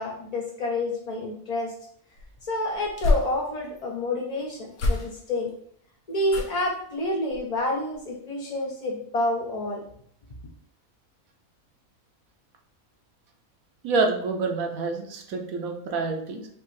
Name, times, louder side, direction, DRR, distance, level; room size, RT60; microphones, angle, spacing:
voice 1, 0.0-1.7 2.4-5.5 6.1-9.8, left 1 dB, 50° left, -2 dB, 0.4 m, -28 dB
sound 1, 2.1-3.8 4.7-5.5 6.2-6.8 7.2-7.6 7.9-8.0, left 2 dB, 80° left, 1.3 m, -29 dB
voice 2, 13.8-16.5, right 3 dB, 75° right, 3 dB, 1.2 m, -27 dB
5.5 x 2.5 x 3.2 m, 0.64 s
omnidirectional pair, 1.5 m